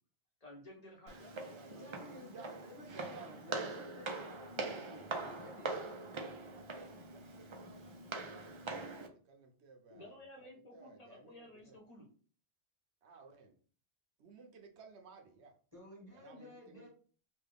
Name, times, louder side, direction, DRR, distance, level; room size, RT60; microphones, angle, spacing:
voice 1, 0.4-1.3 7.8-7.9 9.9-12.1, left 1 dB, 40° left, -1 dB, 0.9 m, -54 dB
Walk footsteps, 1.1-9.1, right 3 dB, 50° right, 0.3 m, -43 dB
voice 2, 1.2-3.7 4.9-5.6 6.5-11.8 13.0-13.5 14.2-15.5 16.1-16.9, right 4 dB, 80° right, 3 dB, 1.0 m, -58 dB
voice 3, 1.8-5.7 15.7-16.9, left 1 dB, 15° right, -6 dB, 1.5 m, -54 dB
3.2 x 2.3 x 3.4 m, 0.42 s
omnidirectional pair, 1.1 m